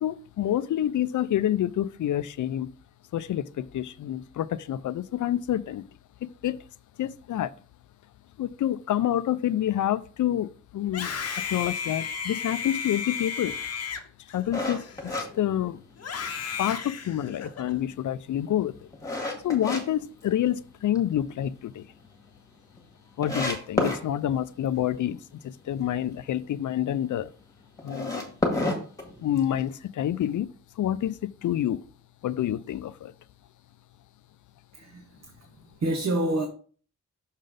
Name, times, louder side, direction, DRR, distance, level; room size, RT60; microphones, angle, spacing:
voice 1, 0.0-2.7 3.1-5.8 6.4-6.6 7.0-7.5 8.4-13.6 14.3-15.8 16.6-18.8 19.4-21.8 23.2-27.3 27.8-28.3 29.2-30.5 30.8-31.8 32.2-33.1, left 11 dB, 85° left, 0.5 m, -28 dB
Screaming, 10.8-15.3 16.0-17.7, left 6 dB, 55° left, 0.8 m, -34 dB
sound 1, 14.5-16.2 16.7-16.8 17.3-19.8 20.2-21.0 21.3-21.4 21.8-21.9 22.0-22.1 22.8-22.9 23.2-24.0 27.8-29.6, left 2 dB, 10° left, 1.6 m, -29 dB
voice 2, 34.7-36.5, right 1 dB, 65° right, 1.1 m, -29 dB
6.4 x 3.9 x 5.1 m
wide cardioid pair, 175°, 29 cm